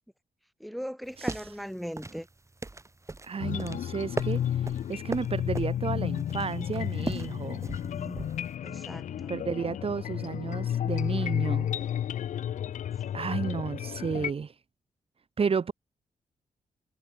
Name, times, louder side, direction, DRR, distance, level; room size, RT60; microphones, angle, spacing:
voice 1, 0.6-2.3 7.8-8.2 8.6-9.3 13.1-13.2, equal, ahead, 6.1 m, -39 dB
sound 1, 1.0-8.5, right 2 dB, 25° right, 5.5 m, -39 dB
voice 2, 3.2-7.6 9.3-11.7 13.1-14.5 15.4-15.7, right 5 dB, 50° right, 3.1 m, -32 dB
sound 2, 3.4-14.3, left 10 dB, 85° left, 6.8 m, -32 dB
cardioid pair, 75°, 12 cm